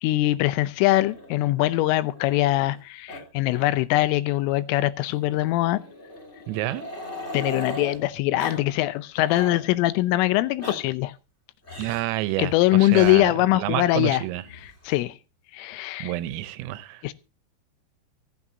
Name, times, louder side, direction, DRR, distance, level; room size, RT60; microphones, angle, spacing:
voice 1, 0.0-5.8 7.3-11.1 12.4-14.2 14.6-15.2 15.5-16.1 17.0-17.1, left 16 dB, 80° left, 3.2 m, -22 dB
Growling, 0.9-2.8 3.1-3.2 3.5-3.7 4.0-4.1 5.1-8.0 8.4-8.6 8.9-9.6 10.4-10.8 11.6-12.1 12.9-13.2 14.3-15.0, left 1 dB, 20° left, 1.9 m, -38 dB
voice 2, 6.5-6.8 11.8-13.3 13.6-14.4 16.0-17.0, right 15 dB, 85° right, 3.5 m, -29 dB
24.0 x 8.7 x 2.8 m
omnidirectional pair, 5.8 m